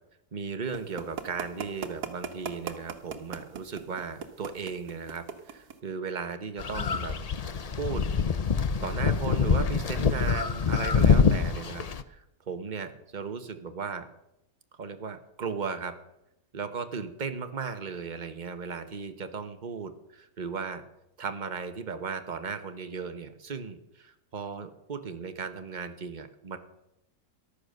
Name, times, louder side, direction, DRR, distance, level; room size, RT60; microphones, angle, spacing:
voice 1, 0.3-8.1 8.8-14.0 14.8-15.9 16.5-20.8 21.2-26.6, right 5 dB, 30° right, 8 dB, 1.1 m, -36 dB
sound 1, 0.7-5.8, right 7 dB, 75° right, 1.8 m, -37 dB
sound 2, 6.6-12.0, left 5 dB, 90° left, 0.3 m, -25 dB
14.0 x 11.5 x 6.6 m, 0.86 s
omnidirectional pair, 1.7 m